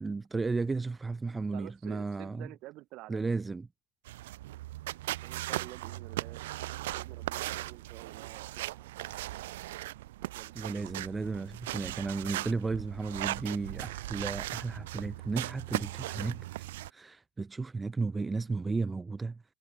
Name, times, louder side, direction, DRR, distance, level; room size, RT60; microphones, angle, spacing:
voice 1, 0.0-2.5 3.1-3.7 10.5-16.5 16.9-19.4, right 3 dB, 15° right, 0.8 m, -34 dB
voice 2, 1.5-3.4 5.0-9.4 10.2-11.0, right 19 dB, 55° right, 2.0 m, -50 dB
sound 1, 4.1-16.9, right 16 dB, 75° right, 0.7 m, -38 dB
hypercardioid pair, 85°, 0 cm